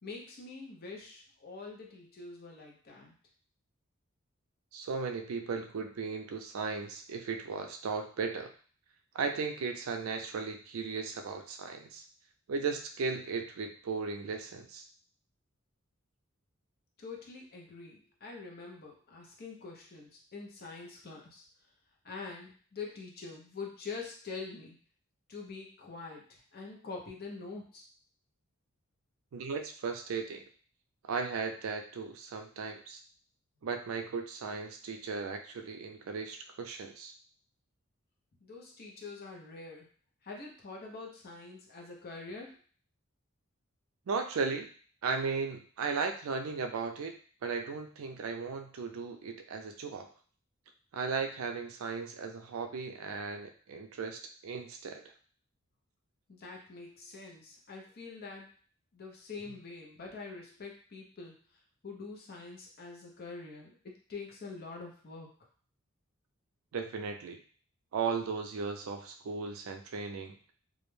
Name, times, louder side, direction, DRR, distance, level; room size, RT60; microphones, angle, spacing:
voice 1, 0.0-3.1 17.0-21.4 22.0-24.8 25.3-27.8 38.4-39.9 40.2-42.5 56.3-58.5 58.9-61.4 61.8-65.3, left 4 dB, 45° left, -1 dB, 0.6 m, -45 dB
voice 2, 4.7-8.5 9.1-12.0 12.5-14.8 29.3-30.4 31.0-33.0 33.6-37.1 44.1-44.7 45.0-47.1 47.4-50.1 50.9-55.0 66.7-67.4 67.9-70.4, right 5 dB, 90° right, 5 dB, 0.4 m, -36 dB
2.4 x 2.1 x 3.1 m, 0.43 s
head